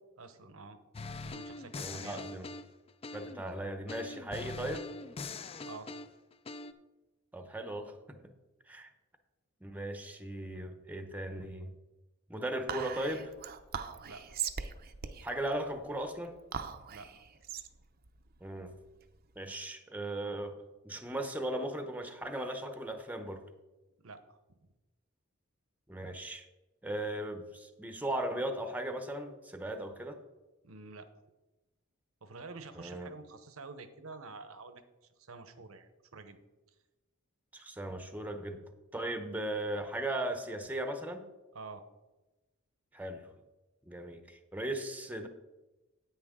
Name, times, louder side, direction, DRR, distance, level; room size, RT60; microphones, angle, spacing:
voice 1, 0.2-0.8 1.2-2.4 5.6-5.9 14.0-14.2 16.9-17.2 24.0-24.7 30.6-31.1 32.2-34.8 35.2-36.4 41.5-41.8, right 3 dB, 75° right, 10 dB, 0.9 m, -48 dB
sound 1, 0.9-3.5 3.9-6.7, left 3 dB, 30° left, 0.4 m, -43 dB
voice 2, 1.8-2.4 3.1-4.9 7.3-7.9 8.7-8.9 9.6-11.7 12.3-13.3 15.2-16.3 18.4-18.7 19.4-20.6 20.8-23.4 25.9-26.4 26.8-30.2 32.8-33.1 37.5-38.6 38.9-41.3 42.9-43.3 43.9-45.3, right 1 dB, 10° right, 6 dB, 0.7 m, -37 dB
Whispering, 12.7-19.3, right 7 dB, 45° right, 0.6 m, -41 dB
9.9 x 8.6 x 3.7 m, 1.1 s
head